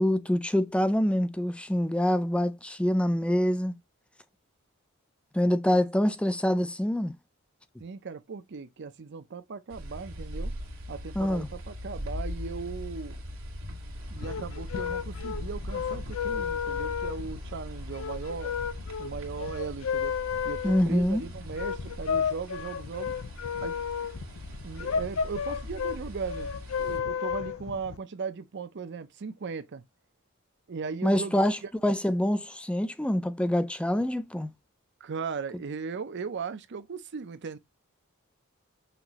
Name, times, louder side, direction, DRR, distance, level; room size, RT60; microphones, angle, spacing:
voice 1, 0.0-3.7 5.3-7.1 11.2-11.5 20.6-21.2 31.0-34.5, left 1 dB, 5° left, 0.4 m, -25 dB
voice 2, 7.8-10.5 10.9-13.2 14.1-18.6 19.0-20.1 20.4-23.1 23.5-23.8 24.6-26.5 26.8-29.8 30.7-31.4 35.0-37.6, right 5 dB, 55° right, 0.5 m, -37 dB
sound 1, 9.7-27.0, equal, 80° right, 1.6 m, -40 dB
sound 2, 14.0-28.0, left 7 dB, 85° left, 0.4 m, -33 dB
5.8 x 2.6 x 2.9 m
head